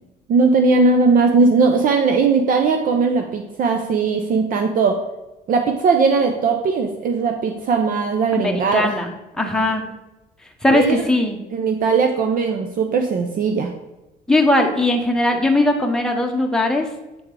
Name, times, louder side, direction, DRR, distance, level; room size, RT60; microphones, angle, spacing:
voice 1, 0.3-5.0 5.5-8.9 10.7-11.1 11.5-13.7, right 4 dB, 55° right, 4 dB, 0.7 m, -18 dB
voice 2, 8.4-9.1 9.4-9.8 10.6-11.4 14.3-16.9, left 2 dB, 5° left, 1 dB, 1.0 m, -19 dB
7.8 x 3.6 x 4.7 m, 1.0 s
cardioid pair, 110°, 17 cm